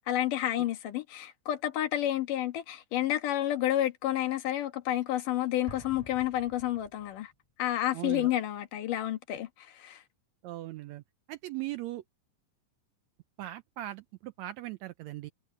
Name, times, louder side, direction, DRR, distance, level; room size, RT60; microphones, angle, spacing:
voice 1, 0.1-7.3 7.6-10.0, left 12 dB, 75° left, 2.9 m, -30 dB
Explosion, 5.7-7.3, left 1 dB, 10° left, 6.9 m, -49 dB
voice 2, 7.9-8.3 10.4-11.0 11.3-12.0 13.4-15.3, right 15 dB, 85° right, 1.6 m, -39 dB
omnidirectional pair, 3.8 m